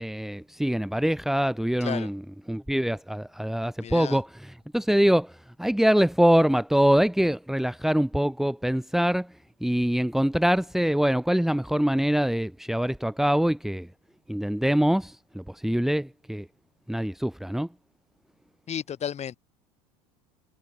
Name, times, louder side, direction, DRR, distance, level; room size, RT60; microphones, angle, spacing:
voice 1, 0.0-2.2 2.5-9.3 9.6-13.9 14.3-16.5 16.9-17.7, equal, ahead, 2.3 m, -24 dB
voice 2, 3.8-4.2 18.7-19.4, left 9 dB, 35° left, 5.7 m, -33 dB
hypercardioid pair, 80°, 19 cm